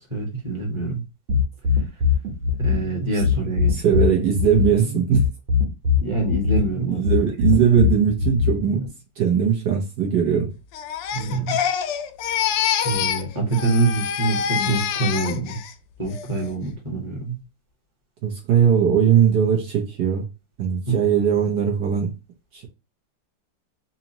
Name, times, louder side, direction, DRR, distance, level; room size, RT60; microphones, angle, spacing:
voice 1, 0.1-1.0 2.6-4.2 6.0-7.0 7.6-7.7 11.1-11.6 12.8-15.6 16.0-17.4 20.9-21.0, right 2 dB, 15° right, 1.3 m, -25 dB
sound 1, 1.3-8.9, left 6 dB, 85° right, 2.0 m, -21 dB
voice 2, 3.7-5.2 6.9-8.9 9.2-10.5 18.2-20.2 20.6-22.1 22.5-22.7, right 8 dB, 65° right, 1.4 m, -20 dB
Crying sobbing, 10.7-13.3 13.5-15.7 16.1-16.5, left 9 dB, 75° left, 1.2 m, -26 dB
4.1 x 2.8 x 2.8 m
omnidirectional pair, 2.1 m